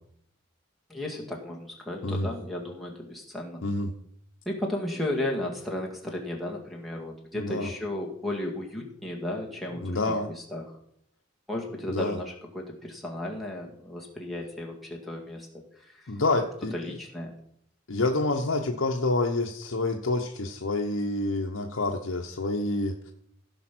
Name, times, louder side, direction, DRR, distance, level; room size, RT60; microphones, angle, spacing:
voice 1, 0.9-3.6 4.5-10.8 11.5-16.1 16.7-17.3, left 1 dB, ahead, -2 dB, 1.9 m, -34 dB
voice 2, 7.4-7.7 9.8-10.3 11.9-12.2 16.1-16.7 17.9-23.1, left 2 dB, 70° left, 2 dB, 0.9 m, -28 dB
15.5 x 5.3 x 6.0 m, 0.71 s
head